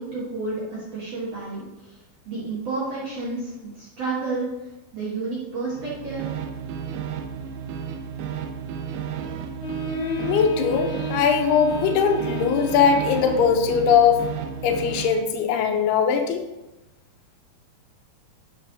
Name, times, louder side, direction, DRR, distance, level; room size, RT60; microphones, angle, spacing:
voice 1, 0.0-6.3, right 3 dB, 60° right, -7 dB, 1.7 m, -31 dB
sound 1, 5.7-15.3, right 7 dB, 80° right, 2.2 m, -33 dB
Wind instrument woodwind instrument, 9.6-13.7, right 1 dB, 55° left, 2.0 m, -33 dB
voice 2, 9.9-14.3 14.6-16.4, left 6 dB, 80° left, 5 dB, 2.6 m, -20 dB
10.5 x 6.4 x 2.7 m, 1.0 s
omnidirectional pair, 4.6 m